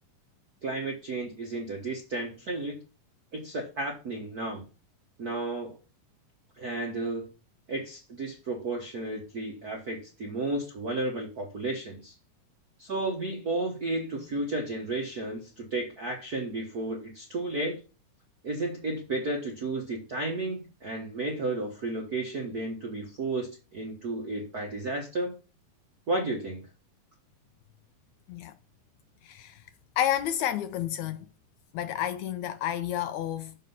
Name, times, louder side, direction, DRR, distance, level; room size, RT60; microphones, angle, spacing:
voice 1, 0.6-2.8 3.3-4.6 5.2-5.8 6.6-7.3 7.7-12.1 12.8-17.8 18.4-25.3 26.1-26.7, right 2 dB, 60° right, 0.9 m, -33 dB
voice 2, 29.2-29.6 30.0-31.2 31.7-33.6, left 11 dB, 80° left, 1.8 m, -30 dB
6.6 x 6.1 x 5.5 m
omnidirectional pair, 3.7 m